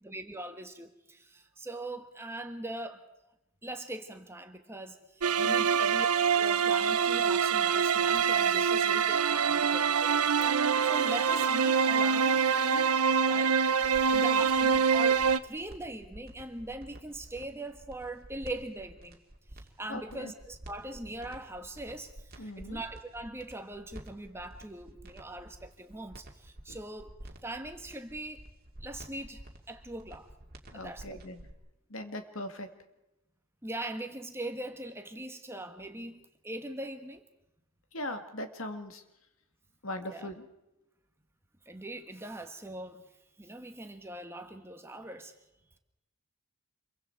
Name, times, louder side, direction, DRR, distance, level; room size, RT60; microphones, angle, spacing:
voice 1, 0.0-3.0 3.6-10.2 10.6-13.6 14.1-15.2 15.4-19.2 19.5-27.1 27.4-28.4 28.8-30.3 30.7-31.0 33.6-37.2 40.1-40.3 41.6-43.0 43.4-45.3, right 1 dB, 10° right, 1.3 m, -41 dB
sound 1, 5.2-15.4, right 6 dB, 85° right, 0.9 m, -25 dB
voice 2, 5.4-5.8 14.2-14.8 19.9-20.3 22.4-22.8 26.7-26.8 30.7-31.5 31.9-32.7 37.9-39.0 39.8-40.5, left 1 dB, 65° left, 2.0 m, -40 dB
sound 2, 13.8-31.5, right 1 dB, 40° right, 2.3 m, -50 dB
27.0 x 23.5 x 4.6 m
head